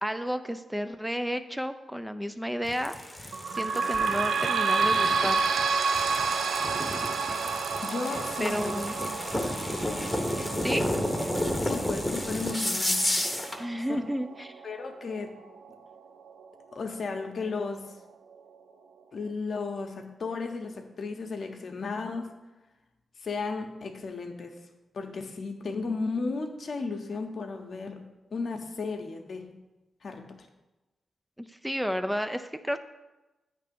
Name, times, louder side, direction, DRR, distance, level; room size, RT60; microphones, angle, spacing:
voice 1, 0.0-5.4 8.4-8.9 10.6-10.8 13.5-14.6 31.4-32.8, equal, 5° right, 9 dB, 0.4 m, -32 dB
sound 1, 2.7-13.6, left 1 dB, 15° left, 0.9 m, -32 dB
sound 2, 3.3-16.5 17.1-17.2 17.4-17.5 18.3-18.4, right 5 dB, 80° right, 0.4 m, -30 dB
voice 2, 7.8-9.6 11.6-13.1 13.7-14.0 14.6-15.3 16.7-18.0 19.1-22.4 23.2-24.6 24.9-28.0 28.3-29.5 30.0-30.4, left 4 dB, 65° left, 5 dB, 0.8 m, -34 dB
8.3 x 3.3 x 5.2 m, 1.1 s
cardioid pair, 55°, 0 cm